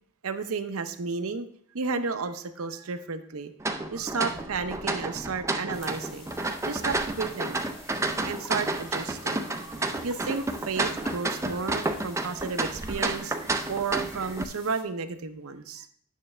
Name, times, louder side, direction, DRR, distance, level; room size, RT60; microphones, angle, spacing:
voice 1, 0.2-1.5 1.7-3.5 3.9-6.3 6.7-7.6 8.2-9.5 10.0-13.3 13.7-15.9, right 4 dB, 75° right, 9 dB, 0.7 m, -32 dB
sound 1, 3.6-14.4, right 2 dB, 15° right, 0.4 m, -31 dB
sound 2, 5.7-14.8, left 2 dB, 25° left, 1.5 m, -50 dB
9.3 x 6.4 x 3.2 m, 0.63 s
head